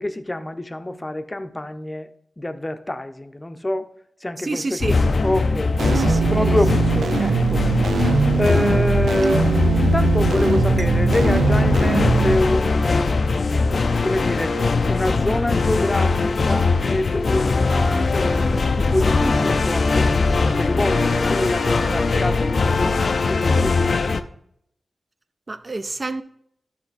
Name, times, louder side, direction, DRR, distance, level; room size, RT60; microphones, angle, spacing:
voice 1, 0.0-2.1 2.4-3.9 4.2-5.7 6.2-13.1 14.0-14.6 14.9-24.2, left 1 dB, 25° left, 0.7 m, -26 dB
voice 2, 4.4-5.0 5.9-6.6 10.8-10.9 25.5-26.2, right 2 dB, 45° right, 0.6 m, -29 dB
sound 1, 4.8-24.2, left 3 dB, 65° left, 0.5 m, -20 dB
sound 2, 5.8-12.4, right 6 dB, 85° right, 0.4 m, -21 dB
12.0 x 4.4 x 4.1 m
cardioid pair, 50°, 0 cm